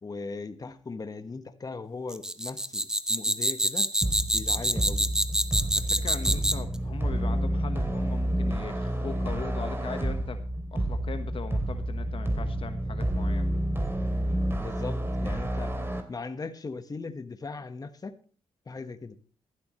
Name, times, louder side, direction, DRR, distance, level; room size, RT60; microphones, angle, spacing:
voice 1, 0.0-3.9 4.3-5.1 14.6-15.7 16.1-18.1 18.7-19.2, left 4 dB, 35° left, 9 dB, 1.5 m, -38 dB
sound 1, 2.1-6.7, right 1 dB, 5° right, 1.0 m, -26 dB
sound 2, 4.0-16.0, right 1 dB, 20° right, 2.9 m, -29 dB
voice 2, 5.7-10.4 10.7-13.5, left 5 dB, 50° left, 8 dB, 1.4 m, -39 dB
15.0 x 11.5 x 3.2 m, 0.41 s
supercardioid pair, 65°, 11 cm